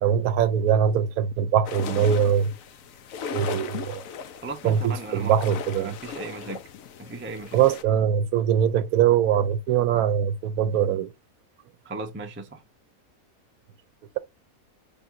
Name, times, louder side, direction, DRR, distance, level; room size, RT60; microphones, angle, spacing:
voice 1, 0.0-2.5 3.3-4.0 4.6-5.9 7.5-11.1, right 8 dB, 75° right, 1.0 m, -22 dB
sound 1, 1.6-7.8, left 6 dB, 65° left, 1.0 m, -37 dB
voice 2, 4.4-5.4 5.7-6.6 7.0-7.6 11.8-12.6, right 3 dB, 15° right, 0.4 m, -36 dB
5.9 x 3.5 x 2.5 m
omnidirectional pair, 1.6 m